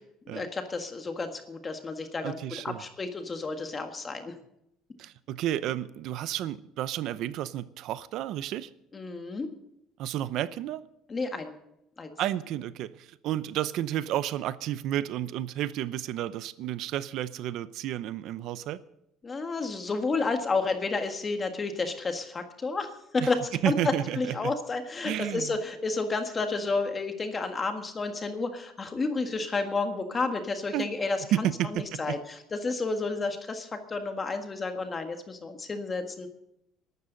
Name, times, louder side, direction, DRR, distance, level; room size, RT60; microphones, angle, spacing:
voice 1, 0.3-4.3 8.9-9.5 11.1-11.5 12.0-12.1 19.2-23.4 23.6-31.5 31.7-36.3, left 3 dB, 20° left, 6 dB, 1.6 m, -31 dB
voice 2, 2.2-2.8 5.0-8.7 10.0-10.8 12.2-18.8 23.2-23.3 23.6-24.5 25.0-25.6 30.7-30.9 31.3-32.2, right 12 dB, 50° right, 16 dB, 0.7 m, -31 dB
21.5 x 12.5 x 3.9 m, 0.81 s
cardioid pair, 175°, 0 cm